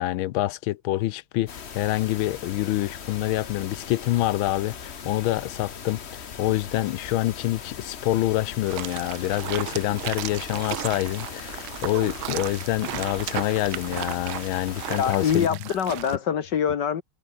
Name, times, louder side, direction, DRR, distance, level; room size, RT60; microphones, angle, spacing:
voice 1, 0.0-15.5, left 15 dB, 85° left, 1.5 m, -26 dB
sound 1, 1.5-15.5, left 7 dB, 40° left, 1.1 m, -39 dB
sound 2, 8.7-16.2, right 16 dB, 85° right, 1.5 m, -35 dB
voice 2, 15.0-17.0, left 8 dB, 60° left, 1.8 m, -24 dB
omnidirectional pair, 2.2 m